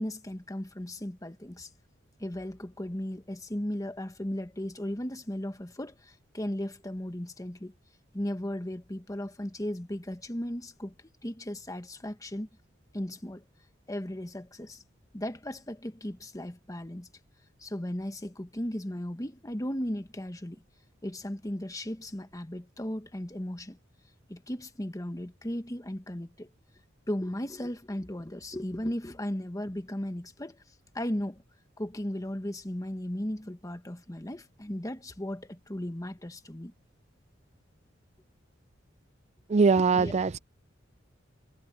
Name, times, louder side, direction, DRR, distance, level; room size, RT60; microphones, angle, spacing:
voice 1, 0.0-1.7 2.2-7.7 8.1-10.9 11.2-12.5 12.9-13.4 13.9-14.8 15.1-17.1 17.6-20.6 21.0-23.8 24.3-26.5 27.1-30.6 30.9-31.4 31.8-36.7 39.9-40.1, left 1 dB, 20° left, 1.4 m, -36 dB
voice 2, 39.5-40.4, right 4 dB, 35° right, 0.4 m, -22 dB
head